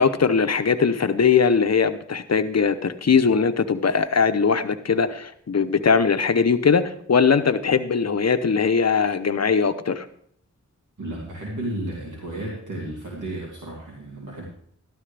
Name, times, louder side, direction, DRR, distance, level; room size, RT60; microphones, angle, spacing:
voice 1, 0.0-10.1, left 5 dB, 60° left, 9 dB, 0.8 m, -20 dB
voice 2, 11.0-14.4, right 1 dB, 90° right, -4 dB, 2.6 m, -33 dB
13.5 x 11.5 x 3.4 m, 0.64 s
wide cardioid pair, 65°, 30 cm